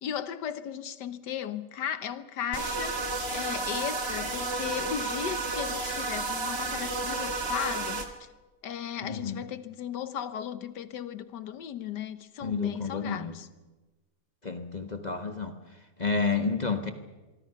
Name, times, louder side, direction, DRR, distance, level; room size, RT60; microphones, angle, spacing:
voice 1, 0.0-3.1 3.3-8.3 8.6-13.5, left 9 dB, 85° left, 1.6 m, -36 dB
sound 1, 2.5-8.1, right 3 dB, 40° right, 1.9 m, -32 dB
voice 2, 9.0-9.4 12.4-13.3 14.4-16.9, left 4 dB, 30° left, 1.3 m, -30 dB
25.0 x 23.5 x 5.8 m
omnidirectional pair, 1.8 m